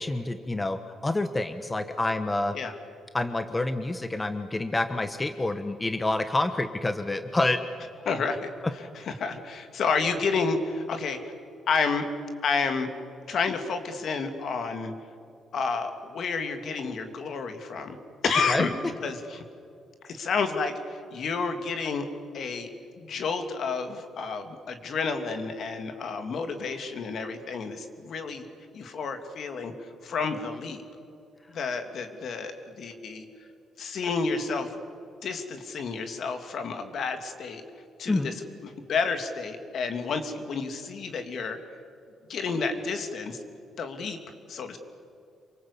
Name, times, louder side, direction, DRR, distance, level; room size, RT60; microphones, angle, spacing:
voice 1, 0.0-2.6 3.1-7.6 18.5-18.7 38.1-38.3, left 2 dB, 15° left, 8 dB, 1.2 m, -28 dB
voice 2, 8.1-8.5 8.9-11.3 11.7-12.1 12.4-12.9 13.3-14.9 15.5-18.0 18.2-18.7 19.0-19.4 20.1-22.1 22.3-22.7 23.0-28.5 28.7-30.8 31.5-33.3 33.8-34.7 35.2-37.6 38.0-38.3 38.6-41.6 42.3-43.4 43.8-44.2 44.5-44.8, left 4 dB, 60° left, 7 dB, 2.7 m, -30 dB
27.5 x 24.5 x 8.5 m, 2.6 s
cardioid pair, 120°, 0 cm